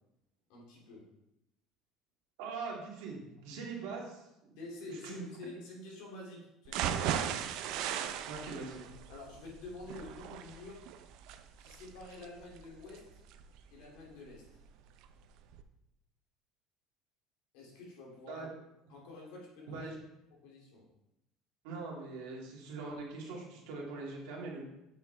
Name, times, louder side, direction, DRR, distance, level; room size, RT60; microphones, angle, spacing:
voice 1, 0.5-1.1 4.6-7.3 9.1-10.8 11.6-13.2 13.7-14.6 17.5-18.5 18.9-19.9 20.3-20.9, left 2 dB, 75° left, -2 dB, 2.6 m, -48 dB
voice 2, 2.4-4.6 4.9-5.3 8.2-8.9 18.3-18.5 19.7-20.0 21.6-24.6, right 4 dB, 90° right, -2 dB, 2.2 m, -42 dB
sound 1, 6.7-14.6 15.0-15.1 15.5-15.6, right 9 dB, 60° right, 0.5 m, -38 dB
7.0 x 6.1 x 3.3 m, 0.86 s
cardioid pair, 160°, 0 cm